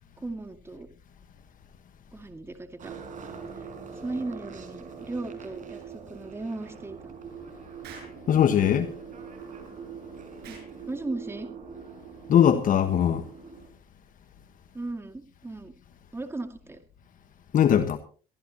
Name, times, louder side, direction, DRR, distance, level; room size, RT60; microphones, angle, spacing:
voice 1, 0.2-0.9 2.1-2.9 4.0-7.1 10.5-10.6 10.9-11.5 14.7-15.7 16.1-16.8, right 2 dB, 15° right, 2.1 m, -36 dB
sound 1, 2.8-13.7, right 6 dB, 50° right, 4.6 m, -43 dB
Explosion, 7.8-8.2 10.4-10.7, right 5 dB, 75° right, 7.5 m, -45 dB
voice 2, 8.3-8.9 12.3-13.2 17.5-18.0, left 9 dB, 55° left, 1.3 m, -20 dB
23.0 x 14.5 x 2.9 m
cardioid pair, 110°, 17 cm